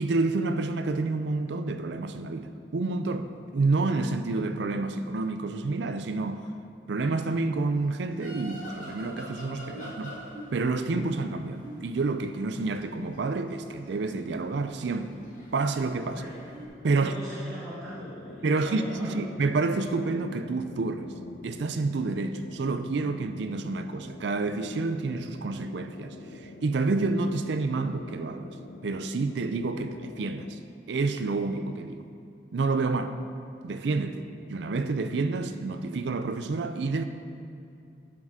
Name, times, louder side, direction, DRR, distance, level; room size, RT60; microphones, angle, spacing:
voice 1, 0.0-6.5 6.9-10.2 10.5-15.1 15.5-16.2 16.8-17.1 18.4-21.1 21.4-28.5 28.8-30.6 30.9-32.1 32.5-33.1 33.6-37.0, right 3 dB, 75° right, 0.4 m, -29 dB
sound 1, 7.8-16.7, equal, 45° left, 1.6 m, -46 dB
voice 2, 16.9-19.3, equal, 5° left, 1.3 m, -41 dB
sound 2, 17.8-30.5, left 3 dB, 65° left, 0.5 m, -45 dB
12.0 x 4.8 x 3.7 m
head